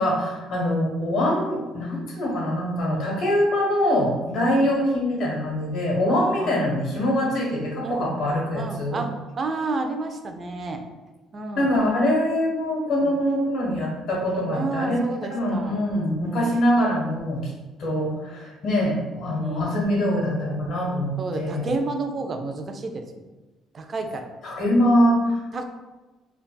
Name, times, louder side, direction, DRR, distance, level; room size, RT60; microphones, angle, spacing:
voice 1, 0.0-9.0 11.5-15.0 15.3-17.5 17.8-21.7 24.4-25.6, left 1 dB, 55° left, -3 dB, 1.1 m, -23 dB
voice 2, 6.1-6.6 7.8-8.1 8.5-10.8 11.3-11.7 13.0-13.2 14.5-15.8 16.2-16.5 19.4-19.7 21.2-23.2 23.7-24.3 25.5-25.6, right 3 dB, 35° right, 5 dB, 0.4 m, -31 dB
3.9 x 2.3 x 2.2 m, 1.2 s
cardioid pair, 110°, 0 cm